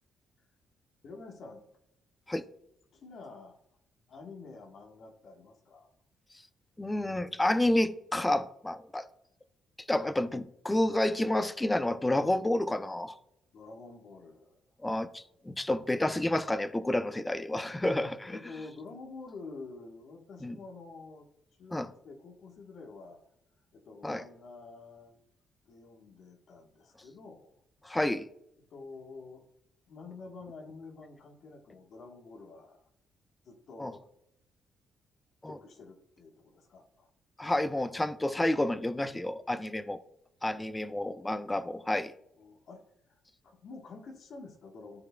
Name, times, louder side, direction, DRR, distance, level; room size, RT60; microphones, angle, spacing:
voice 1, 1.0-1.6 2.9-3.6 4.1-5.9 13.5-14.5 18.3-21.3 21.6-23.2 23.7-25.2 25.7-27.5 28.7-29.4 29.9-32.9 33.4-34.1 35.4-37.1 42.4-45.0, left 3 dB, 60° left, 1.3 m, -48 dB
voice 2, 6.8-9.0 9.9-13.1 14.8-18.4 20.4-20.6 21.7-21.9 24.0-24.2 27.8-28.3 33.8-33.9 35.4-35.6 37.4-40.0 40.4-42.1, left 1 dB, 15° left, 0.5 m, -30 dB
13.0 x 4.7 x 2.2 m
cardioid pair, 90°, 0 cm